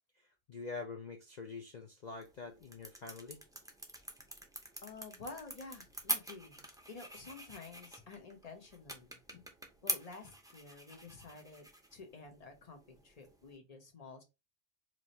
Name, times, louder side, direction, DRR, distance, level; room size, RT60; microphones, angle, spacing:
voice 1, 0.1-3.4 9.3-9.4, left 4 dB, 50° left, 0.5 m, -46 dB
sound 1, 2.0-13.6, right 1 dB, 5° right, 0.5 m, -45 dB
voice 2, 4.8-9.2 9.8-14.2, left 4 dB, 35° left, 0.9 m, -51 dB
4.7 x 3.0 x 2.7 m
omnidirectional pair, 1.2 m